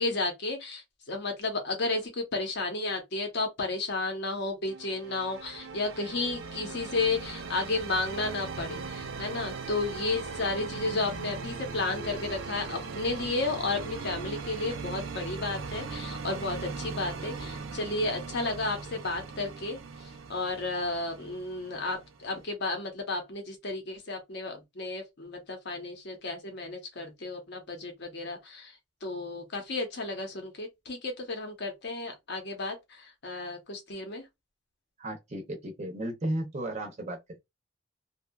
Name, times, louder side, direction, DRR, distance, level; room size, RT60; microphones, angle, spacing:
voice 1, 0.0-28.8 29.0-34.2, left 3 dB, 60° left, 0.8 m, -33 dB
sound 1, 4.7-22.4, right 4 dB, 85° right, 0.5 m, -39 dB
voice 2, 35.0-37.4, right 1 dB, 35° right, 0.5 m, -34 dB
2.7 x 2.2 x 2.2 m
head